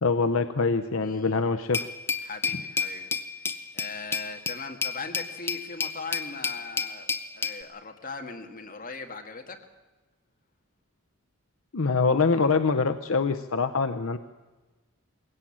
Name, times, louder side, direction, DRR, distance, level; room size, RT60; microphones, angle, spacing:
voice 1, 0.0-1.9 11.7-14.2, left 4 dB, 65° left, 8 dB, 0.7 m, -24 dB
voice 2, 1.0-1.4 2.2-3.1 3.4-9.6, left 4 dB, 40° left, 3 dB, 1.9 m, -40 dB
Glass, 1.7-7.6, left 5 dB, 10° left, 0.7 m, -31 dB
21.0 x 17.0 x 8.7 m, 1.2 s
head